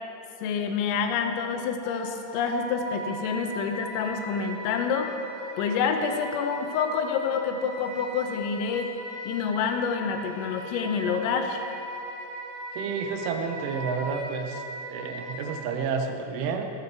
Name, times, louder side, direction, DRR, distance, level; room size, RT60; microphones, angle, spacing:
voice 1, 0.4-5.2 5.6-8.9 9.3-11.6, left 6 dB, 90° left, 5 dB, 3.7 m, -28 dB
Wind instrument woodwind instrument, 1.8-15.6, right 1 dB, 45° right, 4.1 m, -38 dB
voice 2, 12.7-14.6 14.9-16.7, right 5 dB, 75° right, 5 dB, 3.4 m, -30 dB
19.5 x 11.0 x 4.7 m, 2.8 s
omnidirectional pair, 5.8 m